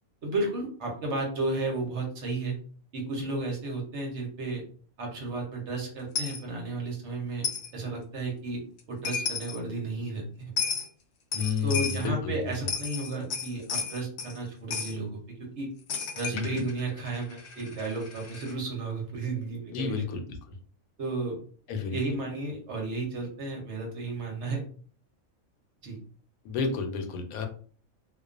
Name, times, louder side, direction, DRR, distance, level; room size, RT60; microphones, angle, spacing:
voice 1, 0.2-2.6 2.9-4.6 5.0-7.5 7.7-8.6 8.9-10.5 11.6-15.7 16.1-20.0 21.0-21.4 21.9-24.7 25.8-26.0, right 2 dB, 60° right, 1 dB, 1.0 m, -33 dB
Coin (dropping), 6.1-6.4 7.4-7.7 8.8-8.9 9.0-9.6 10.6-10.9 11.3-12.1 12.5-14.4 14.7-14.9 15.9-18.5, left 6 dB, 65° left, 0.7 m, -33 dB
voice 2, 11.3-12.3 16.3-16.6 19.7-20.6 21.7-22.0 26.4-27.5, left 5 dB, 90° left, 4 dB, 1.0 m, -31 dB
2.4 x 2.3 x 2.3 m, 0.43 s
omnidirectional pair, 1.5 m